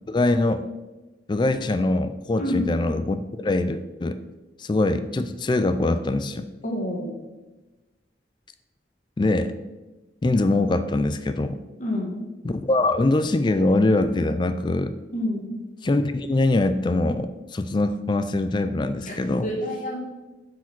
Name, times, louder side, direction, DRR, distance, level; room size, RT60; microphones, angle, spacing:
voice 1, 0.1-0.6 1.3-4.2 4.6-6.5 9.2-9.5 10.2-11.6 12.4-15.0 15.8-19.5, left 2 dB, 25° left, 11 dB, 0.3 m, -23 dB
voice 2, 2.4-2.7 6.6-7.1 11.8-12.2 15.1-15.4 19.1-19.2 19.4-20.0, left 1 dB, 40° left, -1 dB, 1.5 m, -27 dB
7.7 x 4.9 x 6.0 m, 1.1 s
head